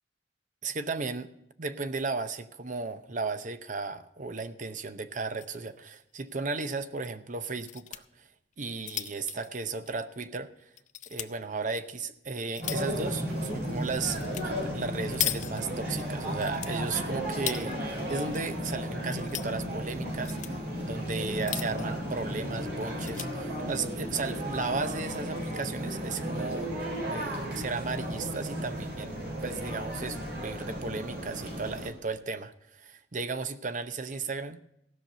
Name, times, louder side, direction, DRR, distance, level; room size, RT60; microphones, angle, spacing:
voice 1, 0.6-1.3 1.6-8.0 8.6-10.7 11.1-26.7 27.0-34.6, right 4 dB, 45° right, 11 dB, 0.7 m, -35 dB
sound 1, 5.1-5.6 5.9-6.0 6.3-6.4 7.4-8.0 8.5-10.3 10.8-11.3 11.9-13.0 14.1-14.5 14.7-16.0 16.4-17.7 18.1-18.7 19.0-19.5 20.1-20.5 21.2-22.0 22.4-22.5 22.8-23.3 24.0-24.3, left 12 dB, 45° left, 0.5 m, -37 dB
sound 2, 12.6-31.9, equal, 60° right, 3.5 m, -34 dB
15.5 x 5.9 x 6.6 m, 0.81 s
head